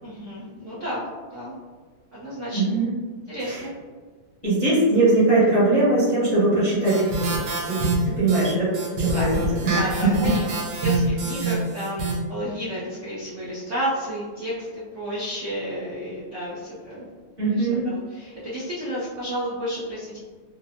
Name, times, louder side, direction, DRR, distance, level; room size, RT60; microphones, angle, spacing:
voice 1, 0.0-1.5 2.1-2.8 3.3-3.7 9.1-9.4 9.7-10.5 10.8-17.1 17.4-20.2, equal, 60° right, -10 dB, 0.7 m, -31 dB
voice 2, 2.5-2.9 3.4-3.6 4.4-7.8 8.2-8.7 9.0-9.8 17.4-17.8, right 2 dB, 30° left, -11 dB, 0.7 m, -21 dB
sound 1, 6.8-12.2, right 2 dB, 80° right, 1.6 m, -26 dB
4.0 x 2.1 x 2.7 m, 1.5 s
omnidirectional pair, 2.3 m